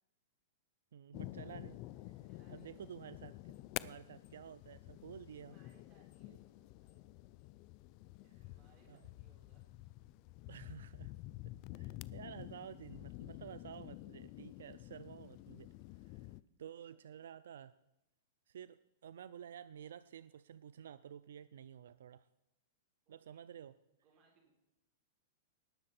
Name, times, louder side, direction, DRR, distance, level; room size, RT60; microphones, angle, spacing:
voice 1, 0.9-1.8 2.5-3.5 3.8-5.6 6.3-6.4 8.9-9.0 10.5-11.1 11.7-15.7 16.0-16.3 16.6-17.7 18.5-22.3 23.1-23.7, right 9 dB, 80° right, 16 dB, 0.4 m, -52 dB
sound 1, 1.1-16.4, left 17 dB, 40° left, 0.3 m, -50 dB
voice 2, 2.2-2.7 5.4-7.0 8.2-9.9 16.8-17.3 23.1-23.2 24.0-24.5, right 4 dB, 35° right, 0 dB, 4.5 m, -72 dB
19.0 x 6.7 x 4.3 m, 0.88 s
supercardioid pair, 155°, 0 cm